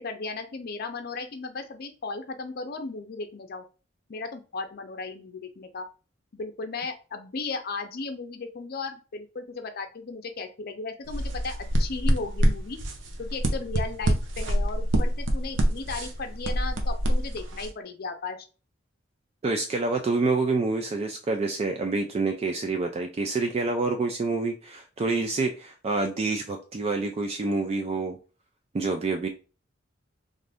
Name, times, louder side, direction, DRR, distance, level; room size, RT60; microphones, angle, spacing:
voice 1, 0.0-3.6 4.1-5.9 6.3-12.8 13.2-18.4, left 3 dB, 55° left, 6 dB, 0.5 m, -36 dB
sound 1, 11.1-17.7, equal, 70° right, 0.6 m, -26 dB
voice 2, 19.4-28.2 28.7-29.3, right 3 dB, 30° right, 4 dB, 0.3 m, -27 dB
2.6 x 2.5 x 3.3 m, 0.34 s
head